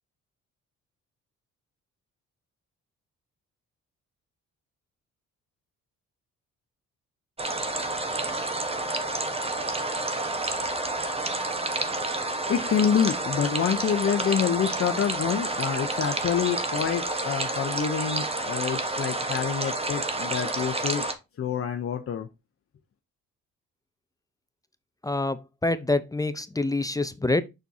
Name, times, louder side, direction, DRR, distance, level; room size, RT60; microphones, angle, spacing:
sound 1, 7.4-21.1, right 2 dB, 20° right, 1.2 m, -29 dB
voice 1, 12.5-21.1 21.4-22.3, left 8 dB, 45° left, 0.8 m, -27 dB
voice 2, 25.0-27.4, left 2 dB, 10° left, 0.6 m, -26 dB
6.8 x 6.2 x 2.8 m
cardioid pair, 90°, 30 cm